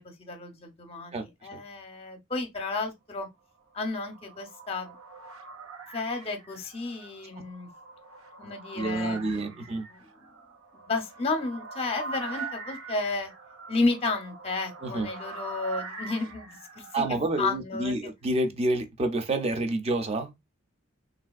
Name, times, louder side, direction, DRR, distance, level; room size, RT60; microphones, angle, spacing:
voice 1, 0.0-3.3 3.7-4.9 5.9-7.7 8.4-10.3 10.7-13.3 13.7-17.0 17.4-18.0, left 3 dB, 30° left, 0.6 m, -32 dB
sound 1, 3.7-17.1, right 4 dB, 85° right, 0.6 m, -43 dB
voice 2, 8.7-9.9 14.8-15.1 16.9-20.3, right 2 dB, 30° right, 0.4 m, -28 dB
3.3 x 2.5 x 2.3 m
head